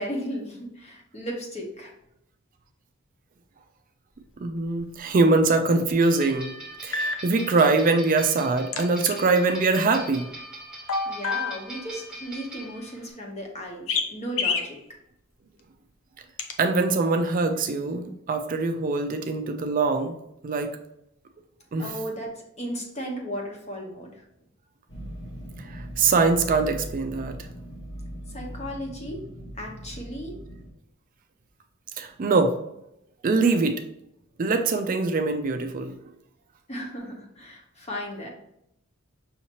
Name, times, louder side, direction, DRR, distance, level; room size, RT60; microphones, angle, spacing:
voice 1, 0.0-1.9 11.1-14.8 21.8-24.2 28.3-29.2 29.6-30.4 36.7-38.3, equal, 35° left, 0 dB, 1.0 m, -35 dB
voice 2, 4.4-6.5 6.8-10.3 16.6-20.2 20.4-20.7 21.7-21.9 25.6-27.5 32.0-32.5 33.2-33.8 34.4-35.9, right 3 dB, 45° right, 6 dB, 0.4 m, -23 dB
sound 1, 4.8-4.9 6.9-7.2 8.7-9.1 10.9-11.7 13.9-14.1 14.4-14.7 16.4-16.5, left 4 dB, 80° left, 0.6 m, -27 dB
sound 2, 6.0-13.1, right 1 dB, 5° right, 1.1 m, -42 dB
sound 3, 24.9-30.7, equal, 65° left, 1.1 m, -40 dB
5.6 x 2.8 x 2.9 m, 0.80 s
head